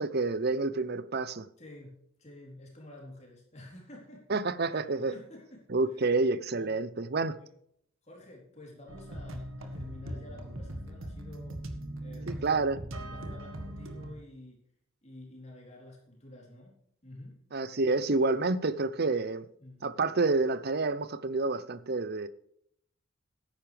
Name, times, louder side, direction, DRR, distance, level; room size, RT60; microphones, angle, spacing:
voice 1, 0.0-1.5 4.3-5.1 5.7-7.4 12.3-12.8 17.5-19.4 19.8-22.3, right 3 dB, 50° right, 0.7 m, -28 dB
voice 2, 1.6-4.4 5.0-6.0 6.5-6.9 7.4-7.6 8.0-11.6 12.0-12.6 13.1-14.6 15.0-16.8 17.0-17.4 19.0-19.2 19.6-19.9, left 1 dB, 30° left, 3.7 m, -50 dB
sound 1, 8.9-14.1, right 1 dB, 70° right, 1.7 m, -40 dB
14.0 x 10.5 x 3.4 m
head